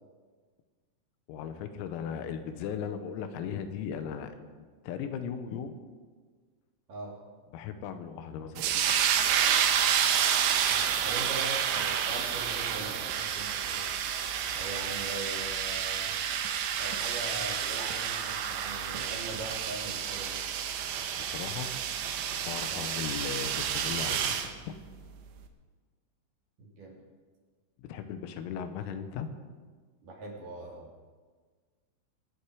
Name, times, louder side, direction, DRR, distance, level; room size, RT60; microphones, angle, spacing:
voice 1, 1.3-5.8 7.5-9.3 21.2-21.7 22.4-24.8 27.8-29.3, left 7 dB, 90° left, 9 dB, 3.8 m, -38 dB
sound 1, 8.6-24.5, right 8 dB, 75° right, 2.8 m, -29 dB
voice 2, 10.7-13.9 14.5-16.2 16.7-20.4 22.7-22.9 26.6-27.0 30.0-30.9, right 2 dB, 45° right, -2 dB, 3.5 m, -41 dB
25.5 x 10.0 x 4.9 m, 1.5 s
omnidirectional pair, 6.0 m